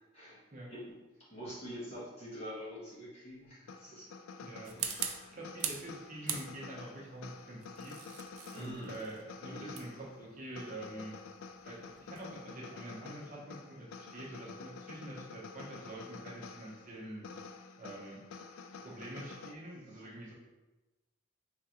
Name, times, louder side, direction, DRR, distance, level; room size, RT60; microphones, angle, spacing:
voice 1, 1.3-4.1 4.8-5.4 8.5-9.0 9.4-9.8 19.9-20.0, equal, 30° left, -7 dB, 1.2 m, -46 dB
sound 1, 3.7-19.5, left 4 dB, 85° left, 0.3 m, -49 dB
voice 2, 4.4-4.8 5.3-8.0 8.5-11.1 11.6-17.2 17.8-18.2 18.8-20.3, right 1 dB, 40° right, -4 dB, 0.8 m, -46 dB
sound 2, 4.7-5.9 6.3-6.9 7.6-12.4, right 8 dB, 90° right, 0.4 m, -41 dB
3.7 x 3.4 x 2.9 m, 1.1 s
head